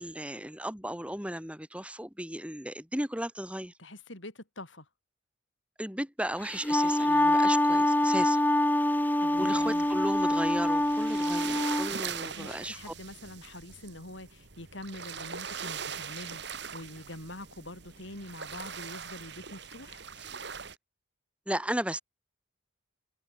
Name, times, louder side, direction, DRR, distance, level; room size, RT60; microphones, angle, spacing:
voice 1, 0.0-3.7 5.8-8.4 9.4-12.9 21.5-22.0, right 1 dB, 5° right, 4.3 m, -35 dB
voice 2, 3.8-4.9 9.2-9.9 11.9-20.0, left 1 dB, 70° left, 7.3 m, -45 dB
Wind instrument woodwind instrument, 6.4-11.9, left 1 dB, 10° left, 1.1 m, -25 dB
sound 1, 9.4-20.7, right 7 dB, 55° right, 2.5 m, -41 dB
head